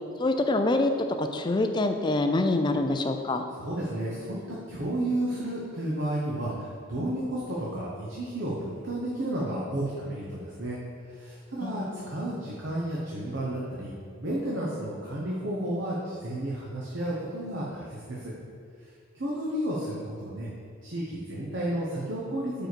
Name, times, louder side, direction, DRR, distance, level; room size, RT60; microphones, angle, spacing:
voice 1, 0.2-3.5 11.6-12.1, left 2 dB, 20° left, 6 dB, 0.4 m, -26 dB
voice 2, 3.5-10.8 11.1-13.9 14.2-18.3 18.8-20.5 20.8-22.7, right 1 dB, 60° right, -5 dB, 0.9 m, -32 dB
5.0 x 4.7 x 6.2 m, 2.3 s
head